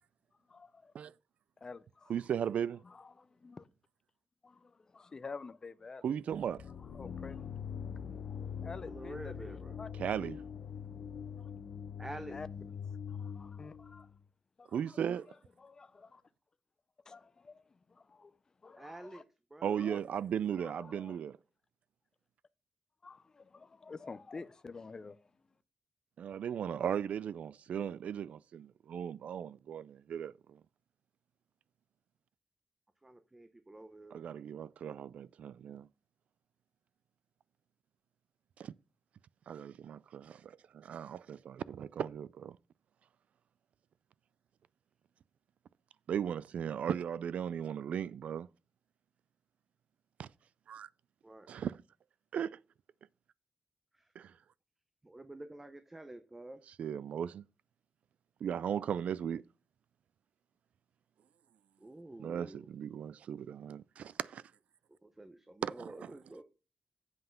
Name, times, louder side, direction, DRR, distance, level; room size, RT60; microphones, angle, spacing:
voice 1, 0.5-0.9 1.6-2.1 2.8-3.7 4.4-6.0 6.9-7.4 8.3-9.9 11.4-11.5 12.3-12.5 13.1-14.1 14.6-15.2 15.6-16.2 17.1-18.4 18.6-19.2 19.8-20.0 20.6-21.2 23.0-25.2, left 4 dB, 30° left, 0.5 m, -49 dB
voice 2, 2.1-2.8 6.0-6.6 10.0-10.4 14.7-15.3 19.6-21.4 26.2-30.6 34.1-35.9 38.6-38.7 39.5-42.6 46.1-48.5 50.2-50.3 50.7-50.9 51.5-51.8 52.3-52.6 54.2-54.3 56.8-57.5 58.4-59.4 62.2-64.4 65.6-65.9, right 8 dB, 90° right, 0.3 m, -37 dB
sound 1, 6.3-14.2, left 7 dB, 90° left, 0.9 m, -43 dB
voice 3, 8.9-9.8 12.0-12.4 18.8-19.2 19.5-20.0 33.0-34.2 51.2-51.5 53.9-54.1 55.0-56.6 61.8-62.7 65.0-66.4, right 1 dB, 15° right, 0.6 m, -49 dB
7.8 x 5.5 x 5.7 m
wide cardioid pair, 170°, 2 cm